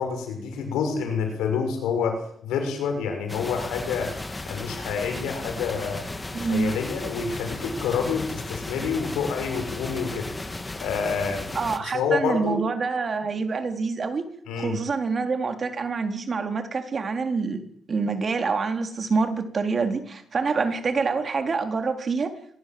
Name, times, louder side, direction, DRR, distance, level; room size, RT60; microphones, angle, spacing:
voice 1, 0.0-2.2 2.4-4.1 4.4-6.0 6.4-10.2 10.8-11.4 11.9-12.6 14.5-14.8, left 6 dB, 90° left, 5 dB, 6.7 m, -27 dB
sound 1, 3.3-11.8, left 2 dB, 20° left, 2.5 m, -35 dB
voice 2, 6.3-6.7 11.5-14.2 14.6-17.6 17.9-22.3, right 4 dB, 40° right, 6 dB, 3.9 m, -26 dB
25.0 x 20.0 x 7.9 m, 0.68 s
cardioid pair, 90°, 0 cm